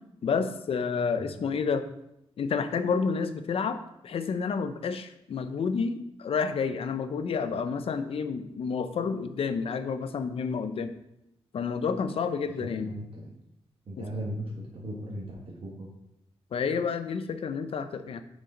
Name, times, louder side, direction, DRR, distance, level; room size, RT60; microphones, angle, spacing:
voice 1, 0.2-1.8 2.4-10.9 11.5-12.9 14.0-14.1 16.5-18.2, left 5 dB, 65° left, 10 dB, 0.6 m, -30 dB
voice 2, 12.6-13.3 13.9-14.4 14.7-15.9, right 1 dB, 55° right, -3 dB, 1.5 m, -37 dB
9.2 x 4.8 x 3.8 m, 0.82 s
wide cardioid pair, 135°, 11 cm